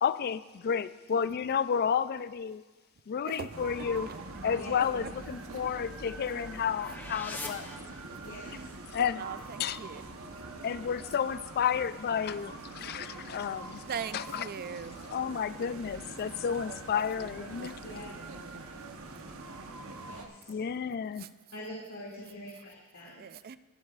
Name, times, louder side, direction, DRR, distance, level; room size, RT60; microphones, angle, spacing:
voice 1, 0.0-2.6 3.1-4.1 4.4-7.7 8.9-9.2 9.6-9.8 10.6-13.8 14.1-14.4 15.1-17.7 20.5-21.3, left 7 dB, 45° left, 0.3 m, -31 dB
voice 2, 3.2-4.3 5.0-5.1 5.5-5.7 8.3-10.1 13.9-15.1 17.6-17.9 18.9-19.0 21.2-21.3 23.0-23.6, right 6 dB, 45° right, 0.4 m, -42 dB
sound 1, 3.5-20.3, right 2 dB, 70° right, 1.0 m, -44 dB
sound 2, 5.1-8.6, left 2 dB, 10° left, 0.8 m, -45 dB
voice 3, 8.2-8.7 17.8-18.1 20.0-20.6 21.5-23.1, left 1 dB, 75° left, 2.3 m, -44 dB
20.5 x 12.0 x 2.4 m
head